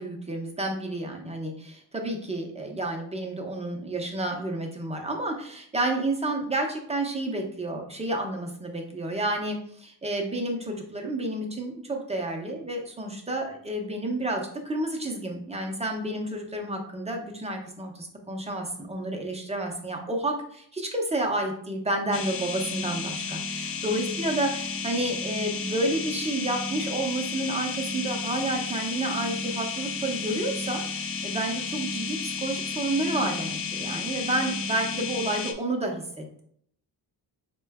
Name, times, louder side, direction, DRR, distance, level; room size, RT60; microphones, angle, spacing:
voice 1, 0.0-36.4, right 1 dB, 15° right, 1 dB, 0.6 m, -30 dB
sound 1, 22.1-35.5, left 4 dB, 35° left, 0.4 m, -32 dB
4.2 x 2.2 x 3.4 m, 0.64 s
cardioid pair, 110°, 41 cm